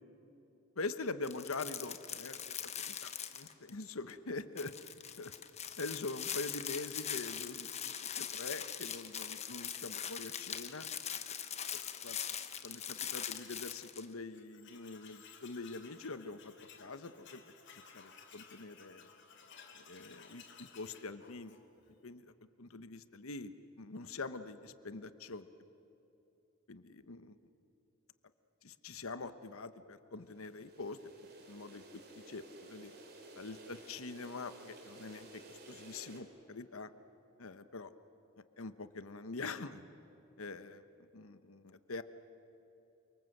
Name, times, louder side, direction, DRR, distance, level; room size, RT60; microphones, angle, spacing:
voice 1, 0.8-4.7 5.2-5.3 5.8-10.9 11.7-12.2 12.6-16.5 16.8-17.4 17.7-19.1 19.7-21.6 22.0-22.3 22.6-25.5 26.7-27.4 28.6-31.0 31.5-32.0 32.3-32.9 33.4-36.9 37.4-37.9 38.6-39.8 40.4-42.0, left 3 dB, 80° left, 11 dB, 1.1 m, -44 dB
sound 1, 1.2-3.8 4.1-4.2 4.6-14.1, left 9 dB, 30° left, 1.2 m, -42 dB
Tools, 8.5-13.7 14.0-14.1 14.3-21.9, left 6 dB, 55° left, 2.7 m, -59 dB
sound 2, 30.2-36.2, right 2 dB, 50° right, 3.8 m, -54 dB
29.0 x 24.5 x 7.9 m, 2.9 s
head